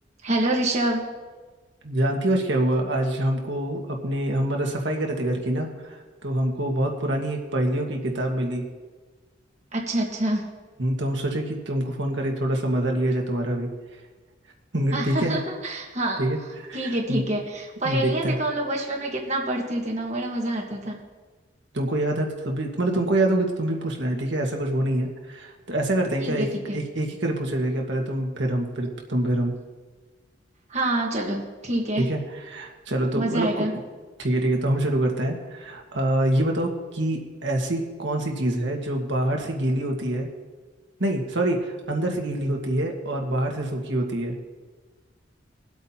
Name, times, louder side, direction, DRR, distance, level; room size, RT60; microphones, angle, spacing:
voice 1, 0.2-1.1 9.7-10.4 14.9-16.2 16.7-21.0 26.2-26.4 30.7-32.1 33.1-33.7, right 1 dB, 35° right, 0 dB, 1.4 m, -26 dB
voice 2, 1.8-8.6 10.8-13.7 14.7-15.4 16.2-17.2 17.8-18.3 21.7-29.6 32.0-32.2 32.5-33.7 34.2-40.3 41.0-44.3, right 1 dB, 70° right, 1 dB, 1.6 m, -25 dB
22.5 x 8.4 x 2.9 m, 1.3 s
head